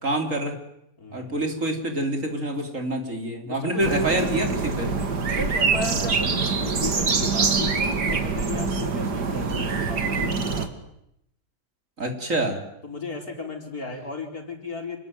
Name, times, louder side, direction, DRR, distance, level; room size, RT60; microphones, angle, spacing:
voice 1, 0.0-0.6 1.1-4.9 12.0-12.6, right 1 dB, 50° right, 4 dB, 3.8 m, -26 dB
voice 2, 1.0-1.4 3.5-4.4 5.3-10.8 12.8-15.0, left 3 dB, 60° left, 3 dB, 5.1 m, -35 dB
sound 1, 3.8-10.7, right 4 dB, 75° right, 2.7 m, -25 dB
27.5 x 21.0 x 9.4 m, 0.78 s
omnidirectional pair, 1.8 m